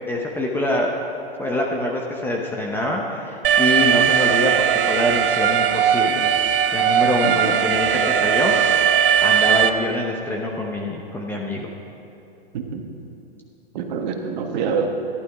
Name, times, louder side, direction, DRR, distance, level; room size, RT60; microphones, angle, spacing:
voice 1, 0.1-0.9 1.4-6.3 6.7-8.5 9.2-11.7, left 1 dB, 5° left, -1 dB, 0.8 m, -25 dB
Alarm, 3.4-9.7, right 9 dB, 60° right, 0.9 m, -18 dB
voice 2, 7.2-7.6 12.5-12.9 13.7-14.9, right 6 dB, 45° right, 3 dB, 1.6 m, -26 dB
14.5 x 11.5 x 4.8 m, 2.8 s
hypercardioid pair, 135°, 31 cm